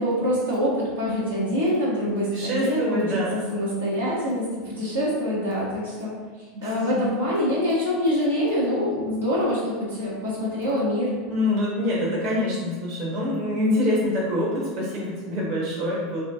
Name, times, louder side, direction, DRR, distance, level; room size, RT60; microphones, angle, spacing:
voice 1, 0.0-3.0 3.3-6.1 6.6-11.1, equal, 80° right, -8 dB, 1.2 m, -25 dB
voice 2, 2.3-3.4 6.5-7.2 11.3-16.2, left 1 dB, 50° right, -5 dB, 1.1 m, -25 dB
4.2 x 2.5 x 3.5 m, 1.4 s
figure-of-eight pair, 80°, 0 cm